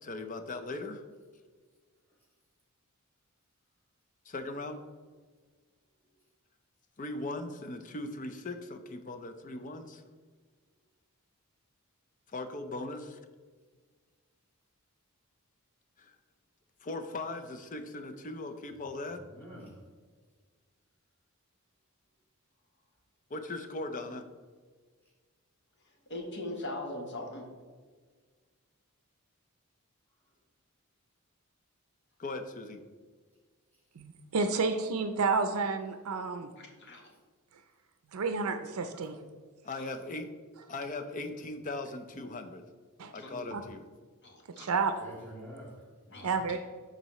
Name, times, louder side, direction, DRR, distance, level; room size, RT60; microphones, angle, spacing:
voice 1, 0.0-1.0 4.3-4.8 7.0-10.0 12.3-13.2 16.0-16.2 16.8-19.2 23.3-24.3 32.2-32.8 39.6-40.3 40.7-42.6 43.1-43.8, left 2 dB, 35° left, 8 dB, 0.5 m, -39 dB
voice 2, 19.1-19.8 30.2-30.3 33.7-33.8 43.2-43.6 45.0-46.4, equal, 10° left, -6 dB, 1.9 m, -48 dB
voice 3, 25.8-27.5 34.4-34.6 36.6-37.1 39.7-39.9 43.1-43.3 44.2-44.8 46.1-46.6, left 1 dB, 55° left, 1 dB, 1.3 m, -41 dB
voice 4, 34.0-36.5 38.1-39.2 43.0-43.1 43.5-43.6 44.6-44.9 46.2-46.6, right 4 dB, 75° right, 8 dB, 0.5 m, -30 dB
12.0 x 4.0 x 3.1 m, 1.5 s
head